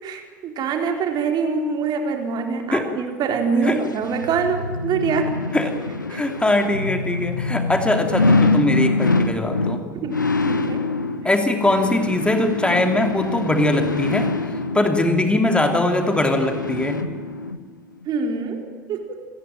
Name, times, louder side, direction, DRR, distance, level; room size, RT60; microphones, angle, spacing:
voice 1, 0.0-5.3 6.1-6.2 9.9-10.8 18.1-19.2, right 5 dB, 45° right, 4 dB, 4.1 m, -25 dB
sound 1, 3.7-17.6 18.0-18.1, left 3 dB, 85° left, 1.1 m, -25 dB
voice 2, 6.1-9.8 11.2-17.0, left 2 dB, 10° left, 4 dB, 3.1 m, -21 dB
27.0 x 20.0 x 9.3 m, 1.4 s
figure-of-eight pair, 65°, 10 cm